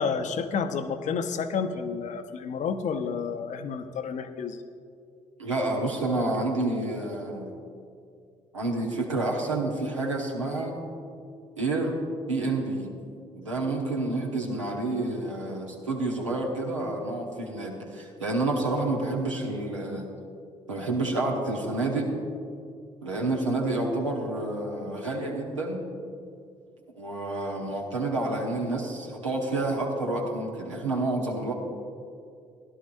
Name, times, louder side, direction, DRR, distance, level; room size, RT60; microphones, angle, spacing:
voice 1, 0.0-4.6, left 6 dB, 50° left, 9 dB, 0.7 m, -30 dB
voice 2, 5.4-7.7 8.5-10.7 11.6-12.0 12.3-12.9 13.3-20.1 20.7-22.1 23.0-25.8 27.0-31.5, right 2 dB, 85° right, -1 dB, 1.1 m, -29 dB
16.5 x 11.5 x 2.6 m, 2.4 s
figure-of-eight pair, 45°, 16 cm